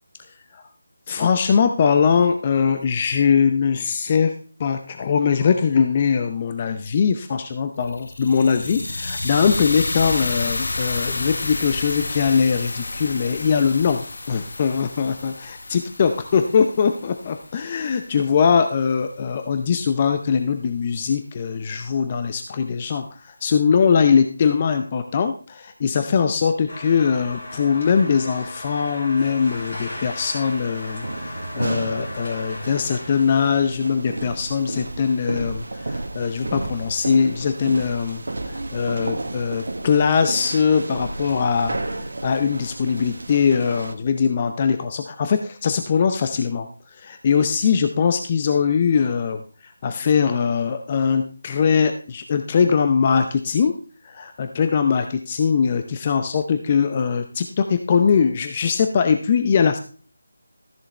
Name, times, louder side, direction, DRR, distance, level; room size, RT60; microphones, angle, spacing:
voice 1, 1.1-4.3 4.6-41.8 42.2-46.7 47.0-53.7 54.0-59.8, left 6 dB, 30° left, 7 dB, 0.6 m, -21 dB
sound 1, 7.8-17.9, left 2 dB, 65° left, 0.9 m, -30 dB
sound 2, 26.7-33.2, left 1 dB, 50° left, 4.6 m, -37 dB
sound 3, 29.5-43.9, right 2 dB, 75° right, 1.3 m, -32 dB
13.5 x 7.1 x 3.3 m, 0.39 s
figure-of-eight pair, 165°, 0 cm